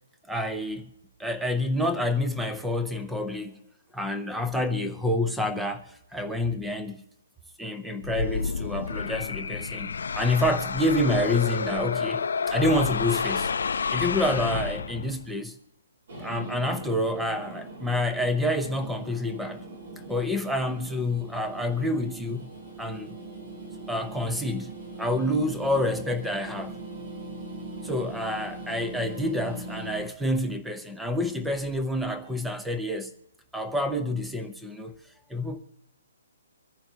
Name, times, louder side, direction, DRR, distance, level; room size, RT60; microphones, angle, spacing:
voice 1, 0.3-0.9 1.2-3.6 3.9-7.0 7.6-12.2 12.5-13.5 13.9-15.6 16.2-19.6 20.1-22.5 22.8-23.1 23.9-26.7 27.8-33.1 33.5-34.9 35.3-35.6, left 1 dB, ahead, 0.6 m, -28 dB
sound 1, 8.0-15.3, left 5 dB, 70° left, 0.5 m, -29 dB
sound 2, 16.1-30.0, right 2 dB, 40° right, 3.6 m, -41 dB
25.5 x 10.5 x 2.8 m
hypercardioid pair, 180°, 0 cm